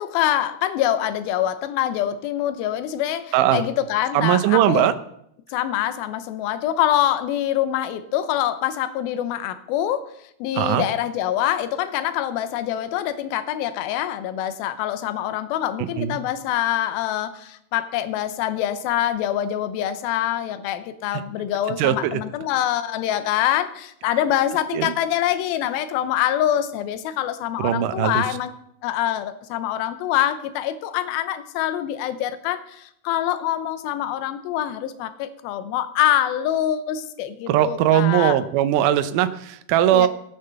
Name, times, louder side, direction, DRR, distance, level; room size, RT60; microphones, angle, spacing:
voice 1, 0.0-4.9 5.5-10.1 10.4-28.5 28.8-38.4 39.9-40.1, left 11 dB, 75° left, 11 dB, 2.5 m, -25 dB
voice 2, 3.3-3.6 4.1-4.9 10.6-10.8 15.8-16.2 21.8-22.2 24.7-24.9 27.6-28.2 37.5-40.1, right 11 dB, 85° right, 10 dB, 1.8 m, -20 dB
16.5 x 6.6 x 6.8 m, 0.74 s
omnidirectional pair, 4.7 m